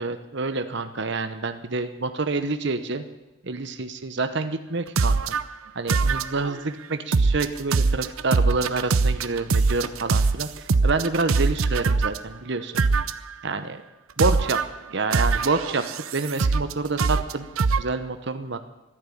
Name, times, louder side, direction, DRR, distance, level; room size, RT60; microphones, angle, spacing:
voice 1, 0.0-3.0 3.4-5.3 5.7-12.8 13.4-13.8 14.2-14.6 14.9-15.8 16.1-17.5 17.8-18.6, right 3 dB, 55° right, 9 dB, 1.0 m, -27 dB
sound 1, 5.0-5.4 5.9-6.6 7.1-12.2 12.8-13.3 14.2-14.7 15.1-16.7 17.0-17.8, right 4 dB, 80° right, 0.6 m, -22 dB
13.5 x 10.5 x 8.5 m, 1.0 s
head